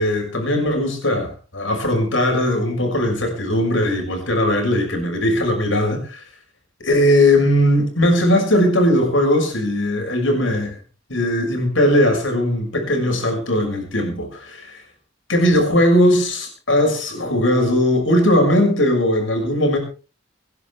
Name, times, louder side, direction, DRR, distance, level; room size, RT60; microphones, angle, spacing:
voice 1, 0.0-6.2 6.8-10.8 11.1-14.8 15.3-19.8, left 1 dB, 80° left, 3 dB, 6.4 m, -19 dB
26.0 x 11.0 x 3.4 m, 0.36 s
head